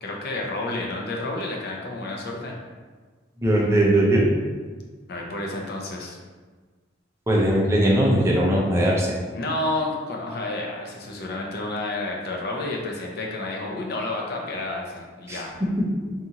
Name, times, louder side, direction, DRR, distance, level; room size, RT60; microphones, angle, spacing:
voice 1, 0.0-2.6 5.1-6.2 9.3-15.5, left 2 dB, 50° left, -1 dB, 0.5 m, -30 dB
voice 2, 3.4-4.2 7.3-9.1 15.3-15.4, right 1 dB, 15° right, -3 dB, 0.4 m, -19 dB
2.7 x 2.4 x 2.8 m, 1.4 s
head